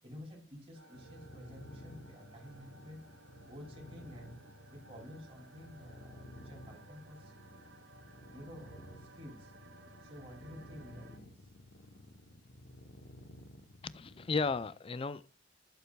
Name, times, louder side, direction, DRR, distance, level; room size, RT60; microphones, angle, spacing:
voice 1, 0.0-3.1 3.4-4.4 4.7-7.3 8.3-9.5 10.0-11.5, left 1 dB, 30° right, 2.7 m, -51 dB
sound 1, 0.7-11.2, right 3 dB, 85° right, 1.5 m, -59 dB
sound 2, 0.9-14.8, left 1 dB, 75° left, 0.9 m, -54 dB
voice 2, 13.8-15.4, left 4 dB, 30° left, 0.4 m, -35 dB
11.5 x 8.0 x 2.2 m
head